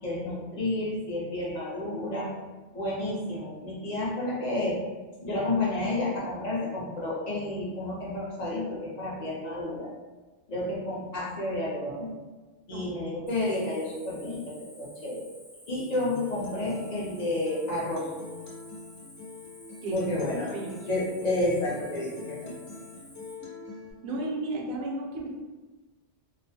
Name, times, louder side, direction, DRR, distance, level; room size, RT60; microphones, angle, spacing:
voice 1, 0.0-2.3 2.7-4.8 5.2-9.9 10.5-12.1 12.7-15.2 15.7-18.1 19.9-20.5 20.9-22.6, left 2 dB, 50° left, -5 dB, 0.6 m, -30 dB
Cricket, 13.3-23.3, equal, 15° right, 0.5 m, -52 dB
Acoustic guitar, 15.9-23.9, left 3 dB, 75° left, 0.8 m, -44 dB
voice 2, 19.8-20.1 20.5-20.8 23.4-23.5 24.0-25.3, right 2 dB, 65° right, -2 dB, 0.8 m, -33 dB
2.3 x 2.1 x 2.7 m, 1.3 s
omnidirectional pair, 1.1 m